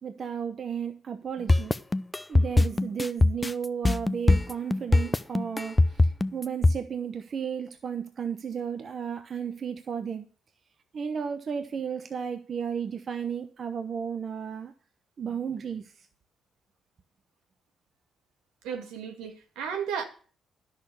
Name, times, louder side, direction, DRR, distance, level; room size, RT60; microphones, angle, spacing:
voice 1, 0.0-1.7 2.3-10.3 10.9-14.7 15.2-16.1, right 7 dB, 55° right, 0.9 m, -34 dB
sound 1, 1.5-6.8, left 2 dB, 20° left, 0.7 m, -21 dB
voice 2, 18.6-20.1, right 7 dB, 85° right, 2.0 m, -34 dB
10.5 x 6.5 x 6.8 m
supercardioid pair, 60°, 0 cm